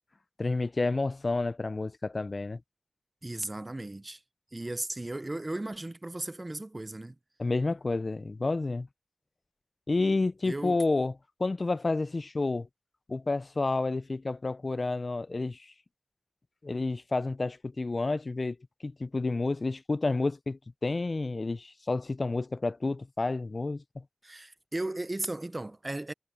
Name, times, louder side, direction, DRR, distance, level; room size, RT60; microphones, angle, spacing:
voice 1, 0.4-2.6 7.4-8.9 9.9-11.1 11.4-12.7 13.1-15.7 16.6-18.6 18.8-24.0, left 3 dB, 60° left, 0.4 m, -30 dB
voice 2, 3.2-4.2 4.5-7.2 10.5-10.8 24.2-26.1, right 2 dB, 35° right, 0.6 m, -36 dB
wide cardioid pair, 65°, 0 cm